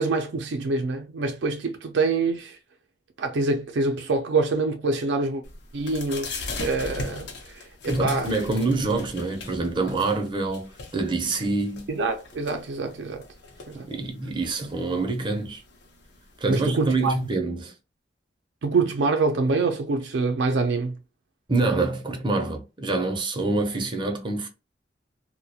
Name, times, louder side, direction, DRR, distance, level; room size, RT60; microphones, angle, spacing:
voice 1, 0.0-2.6 3.2-5.4 5.7-8.3 11.9-13.2 13.7-13.9 16.5-17.1 18.6-21.0, right 3 dB, 80° right, 0.4 m, -25 dB
sound 1, 5.4-17.3, left 3 dB, 75° left, 0.6 m, -40 dB
voice 2, 7.9-11.9 13.9-15.6 16.4-17.7 21.5-24.5, right 3 dB, 25° right, 0.5 m, -26 dB
2.3 x 2.1 x 2.7 m
head